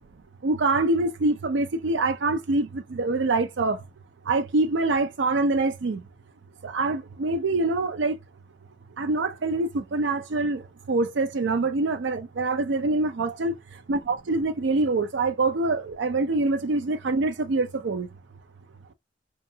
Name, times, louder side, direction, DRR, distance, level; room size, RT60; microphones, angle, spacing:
voice 1, 0.4-3.8 4.3-6.0 6.6-8.2 9.0-10.6 10.9-13.5 13.9-18.1, right 3 dB, 80° right, 0.5 m, -25 dB
2.8 x 2.5 x 2.7 m
head